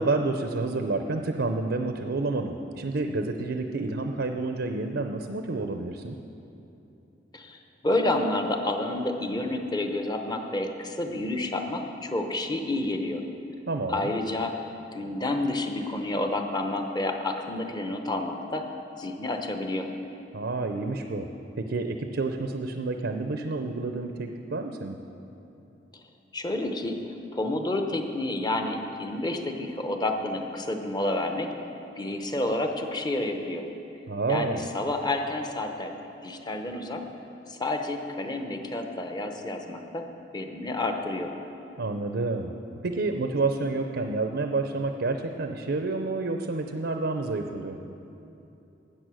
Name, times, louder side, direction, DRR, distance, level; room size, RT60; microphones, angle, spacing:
voice 1, 0.0-6.2 13.7-14.1 20.3-21.3 21.6-25.0 34.1-34.6 41.8-42.5 42.8-47.8, right 3 dB, 75° right, 5 dB, 0.6 m, -29 dB
voice 2, 7.3-13.2 13.9-14.6 14.9-18.6 19.0-19.9 25.9-26.0 26.3-27.0 27.3-31.5 32.0-33.7 34.3-36.0 36.2-37.0 37.5-40.1 40.3-41.3, left 2 dB, 25° left, 5 dB, 0.8 m, -29 dB
13.0 x 8.8 x 6.2 m, 2.9 s
head